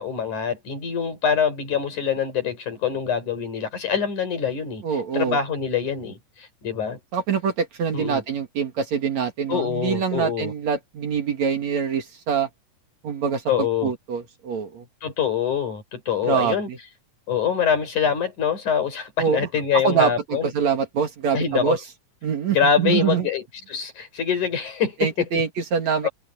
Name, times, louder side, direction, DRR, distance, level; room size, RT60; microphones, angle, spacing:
voice 1, 0.0-7.0 7.9-8.2 9.5-10.5 13.5-13.9 15.0-16.7 17.3-20.5 21.3-21.8 22.5-25.3 26.0-26.1, left 7 dB, 60° left, 6.2 m, -25 dB
voice 2, 4.8-5.4 7.1-12.5 13.0-14.8 16.2-16.8 19.2-19.4 19.8-21.8 22.2-23.3 25.0-26.1, right 7 dB, 55° right, 3.2 m, -24 dB
omnidirectional pair, 3.9 m